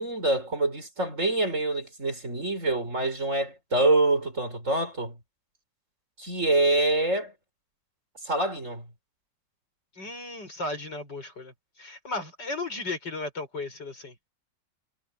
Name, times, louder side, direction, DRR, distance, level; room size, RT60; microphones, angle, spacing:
voice 1, 0.0-5.2 6.2-7.3 8.2-8.9, right 2 dB, 40° right, 6.0 m, -26 dB
voice 2, 10.0-14.1, left 2 dB, 65° left, 7.8 m, -35 dB
omnidirectional pair, 2.0 m